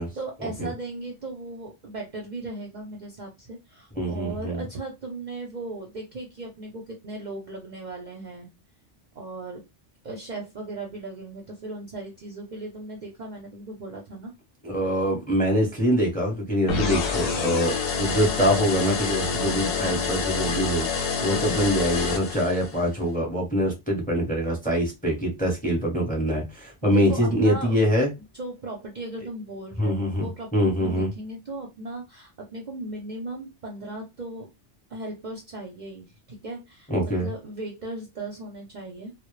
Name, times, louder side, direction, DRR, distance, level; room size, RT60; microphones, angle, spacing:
voice 1, 0.1-8.5 9.2-9.7 10.0-14.3 26.8-28.0 28.3-30.5 30.8-34.5 34.9-36.9 37.2-39.1, right 2 dB, 50° right, 0.6 m, -37 dB
voice 2, 4.0-4.6 14.6-28.1 29.8-31.1 36.9-37.3, equal, 10° left, 0.6 m, -24 dB
sound 1, 16.7-22.9, left 5 dB, 65° left, 0.7 m, -27 dB
2.0 x 2.0 x 3.0 m
omnidirectional pair, 1.2 m